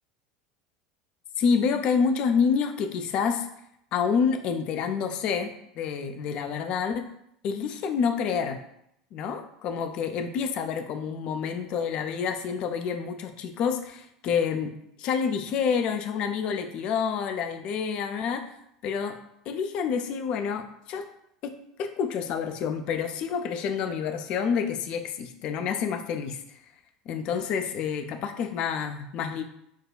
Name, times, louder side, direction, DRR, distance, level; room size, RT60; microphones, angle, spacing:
voice 1, 1.4-3.5 3.9-7.1 7.4-8.6 9.1-14.7 15.0-18.4 18.8-19.2 19.5-21.1 21.4-21.5 21.8-26.4 27.1-29.4, left 6 dB, 50° left, 7 dB, 0.4 m, -28 dB
6.0 x 2.2 x 2.3 m, 0.76 s
figure-of-eight pair, 75°, 2 cm